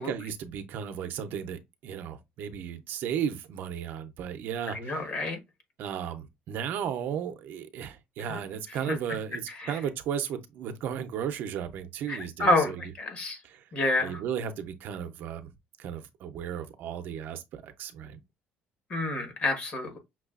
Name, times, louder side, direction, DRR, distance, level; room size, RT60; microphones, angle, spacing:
voice 1, 0.0-5.2 5.8-12.9 13.4-13.7 14.0-15.5 15.8-18.2, right 8 dB, 65° right, 0.6 m, -35 dB
voice 2, 4.7-5.4 8.3-8.4 8.9-9.0 9.6-9.7 12.1-13.4 13.7-14.2 18.9-20.0, left 2 dB, 40° left, 1.3 m, -28 dB
5.9 x 2.4 x 2.4 m
cardioid pair, 140°, 4 cm